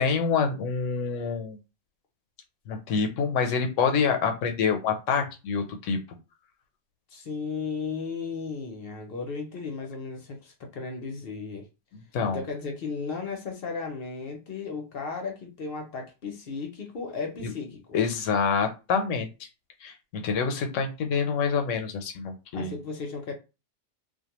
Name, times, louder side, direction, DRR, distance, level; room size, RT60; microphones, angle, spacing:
voice 1, 0.0-1.6 2.7-6.0 11.9-12.4 17.4-17.5 17.9-19.3 19.8-22.8, left 5 dB, 85° left, 0.9 m, -26 dB
voice 2, 7.1-11.7 12.2-17.8 22.5-23.3, left 5 dB, 60° left, 0.7 m, -35 dB
2.4 x 2.2 x 2.8 m
omnidirectional pair, 1.3 m